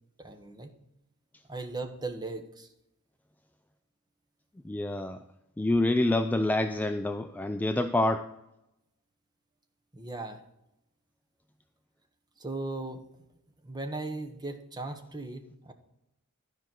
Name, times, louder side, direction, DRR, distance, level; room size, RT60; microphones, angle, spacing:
voice 1, 0.2-0.7 1.5-2.7 9.9-10.4 12.4-13.0 13.6-15.7, right 2 dB, 20° right, 6 dB, 1.0 m, -37 dB
voice 2, 4.6-5.2 5.6-8.3, left 2 dB, 5° left, 7 dB, 0.3 m, -27 dB
12.0 x 5.1 x 6.0 m, 0.87 s
head